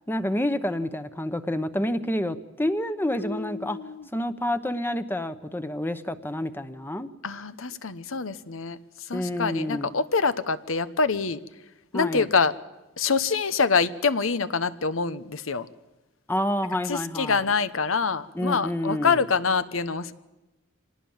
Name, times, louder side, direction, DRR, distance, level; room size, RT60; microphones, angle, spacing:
voice 1, 0.0-3.8 4.1-7.1 9.1-9.9 11.9-12.3 16.3-17.4 18.3-19.2, left 1 dB, 10° left, 10 dB, 0.9 m, -28 dB
voice 2, 3.2-4.1 7.2-11.4 11.9-12.5 13.0-15.7 16.8-20.1, left 5 dB, 90° left, 13 dB, 1.1 m, -26 dB
25.5 x 19.0 x 7.3 m, 1.1 s
head